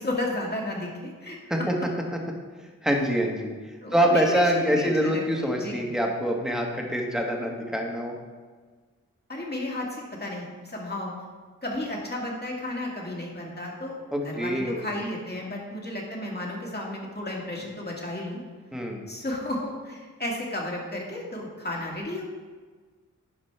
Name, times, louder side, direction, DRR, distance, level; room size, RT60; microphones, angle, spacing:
voice 1, 0.0-1.6 3.8-5.9 9.3-11.3 11.6-14.0 14.2-18.4 19.1-22.2, left 1 dB, 30° left, -2 dB, 2.3 m, -33 dB
voice 2, 2.8-3.5 3.9-8.1 14.1-14.9 18.7-19.0, equal, ahead, 0 dB, 1.6 m, -25 dB
11.5 x 5.2 x 3.4 m, 1.4 s
cardioid pair, 50°, 34 cm